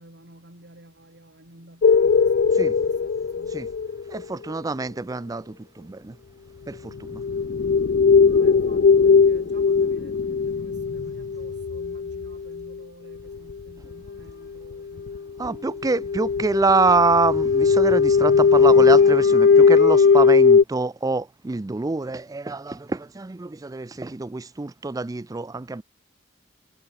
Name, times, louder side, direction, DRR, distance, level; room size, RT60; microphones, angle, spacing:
voice 1, 0.0-3.6 8.3-16.3, right 1 dB, 60° right, 6.7 m, -51 dB
sound 1, 1.8-4.2 7.1-12.7 13.5-13.6 13.9-14.1 14.7-14.8 15.0-15.2 15.4-20.6, left 5 dB, 55° left, 0.4 m, -18 dB
voice 2, 4.1-6.2 6.7-7.2 15.4-25.8, right 3 dB, 20° right, 0.4 m, -25 dB
head